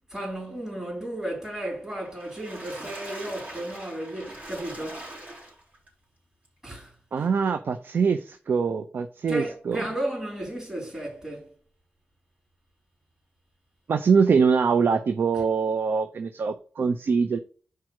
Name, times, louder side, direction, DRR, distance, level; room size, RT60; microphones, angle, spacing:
voice 1, 0.1-5.1 6.6-7.3 9.3-11.5, right 1 dB, 20° right, 3.6 m, -34 dB
Water / Splash splatter, 2.0-5.9 6.4-6.5 6.9-7.0, right 1 dB, 40° right, 3.5 m, -42 dB
voice 2, 7.1-9.8 13.9-17.4, right 5 dB, 65° right, 0.6 m, -23 dB
4.8 x 4.6 x 6.1 m
wide cardioid pair, 110°, 4 cm